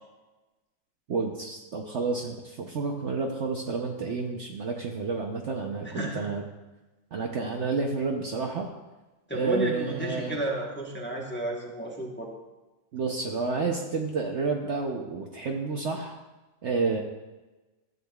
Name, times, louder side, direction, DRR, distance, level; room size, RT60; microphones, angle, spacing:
voice 1, 1.1-6.4 7.1-8.7 9.3-10.4 12.9-16.2 16.6-17.0, right 4 dB, 55° right, 1 dB, 0.9 m, -30 dB
voice 2, 5.8-6.3 9.3-12.3, right 1 dB, 10° left, -2 dB, 1.0 m, -32 dB
13.5 x 8.2 x 2.3 m, 1.1 s
omnidirectional pair, 1.6 m